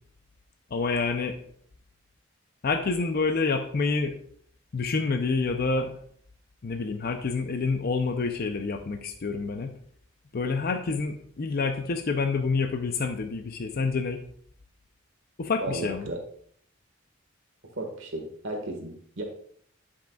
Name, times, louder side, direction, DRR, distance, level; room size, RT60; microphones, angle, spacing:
voice 1, 0.7-1.4 2.6-4.2 4.7-5.9 6.6-9.8 10.3-14.2 15.4-16.1, left 4 dB, 50° left, 6 dB, 0.5 m, -28 dB
voice 2, 15.6-16.2 17.7-19.2, right 2 dB, 65° right, 2 dB, 1.6 m, -34 dB
10.5 x 5.7 x 2.3 m, 0.62 s
head